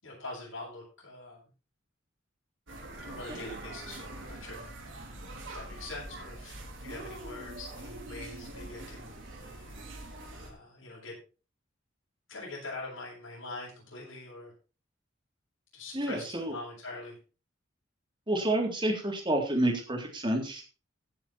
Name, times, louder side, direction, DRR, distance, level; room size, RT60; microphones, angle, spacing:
voice 1, 0.0-1.4 3.0-4.7 5.5-9.8 10.3-11.2 12.3-14.5 15.7-17.2, left 2 dB, 85° left, -7 dB, 7.9 m, -44 dB
sound 1, 2.7-10.5, right 1 dB, 75° right, 4.3 m, -44 dB
voice 2, 15.9-16.5 18.3-20.8, right 1 dB, 25° right, 2 dB, 3.7 m, -29 dB
17.0 x 7.6 x 4.5 m, 0.35 s
head